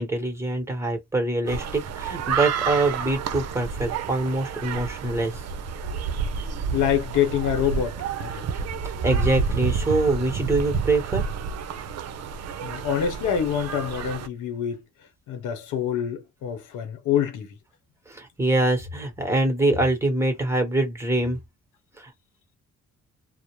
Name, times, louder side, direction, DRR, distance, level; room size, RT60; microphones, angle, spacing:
voice 1, 0.0-5.4 9.0-11.2 18.1-21.4 22.0-22.1, right 2 dB, 10° right, 1.1 m, -24 dB
sound 1, 1.5-14.3, right 6 dB, 60° right, 0.5 m, -30 dB
voice 2, 6.7-8.4 12.6-14.8 15.3-17.5, left 9 dB, 90° left, 0.8 m, -26 dB
2.3 x 2.0 x 3.0 m
cardioid pair, 90°, 30 cm